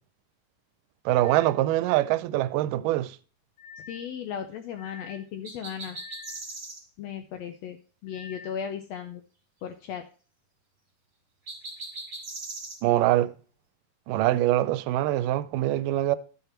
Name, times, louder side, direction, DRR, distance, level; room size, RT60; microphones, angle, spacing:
voice 1, 1.1-3.2 12.8-13.3 14.1-16.2, right 15 dB, 85° right, 2.2 m, -24 dB
sound 1, 1.2-1.6 3.6-4.1 4.7-5.3 5.9-6.5 8.1-8.5, left 6 dB, 55° left, 1.2 m, -46 dB
voice 2, 3.9-6.0 7.0-7.8 8.0-9.2 9.6-10.0, left 8 dB, 80° left, 1.5 m, -36 dB
sound 2, 5.4-6.8 11.5-12.8, right 2 dB, 20° right, 2.1 m, -39 dB
11.0 x 5.8 x 4.3 m
omnidirectional pair, 3.7 m